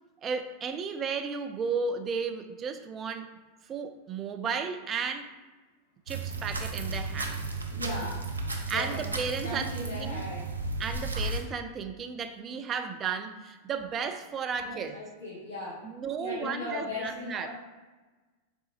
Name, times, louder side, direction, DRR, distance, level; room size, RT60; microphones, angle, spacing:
voice 1, 0.2-3.3 3.7-5.3 6.1-7.4 8.7-10.3 10.8-14.9 15.8-17.5, right 5 dB, 25° right, 7 dB, 0.4 m, -34 dB
sound 1, 6.1-11.4, right 3 dB, 80° right, 0.5 m, -34 dB
voice 2, 7.7-8.2 8.7-9.1 9.4-10.4 14.6-15.8 16.2-17.5, left 2 dB, 65° left, -8 dB, 1.3 m, -37 dB
5.0 x 3.4 x 2.8 m, 1.2 s
figure-of-eight pair, 90°, 0 cm